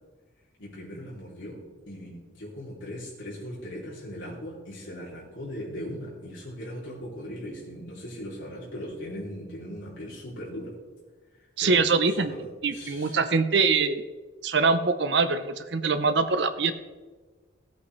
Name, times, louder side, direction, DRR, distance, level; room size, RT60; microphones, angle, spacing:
voice 1, 0.6-10.7 11.6-13.1, equal, 70° left, -7 dB, 3.0 m, -39 dB
voice 2, 11.6-12.4 12.6-14.0 14.4-16.7, right 4 dB, 60° right, 10 dB, 0.7 m, -23 dB
16.5 x 8.5 x 3.2 m, 1.3 s
head